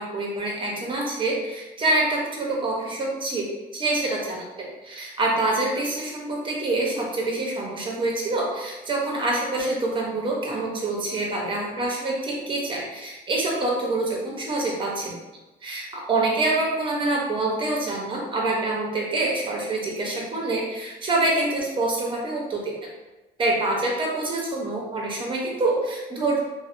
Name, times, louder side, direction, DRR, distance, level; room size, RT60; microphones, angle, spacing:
voice 1, 0.0-3.4 3.7-15.2 15.6-22.7 23.4-26.4, right 2 dB, 30° right, -2 dB, 0.7 m, -26 dB
2.6 x 2.1 x 2.5 m, 1.1 s
cardioid pair, 110°, 17 cm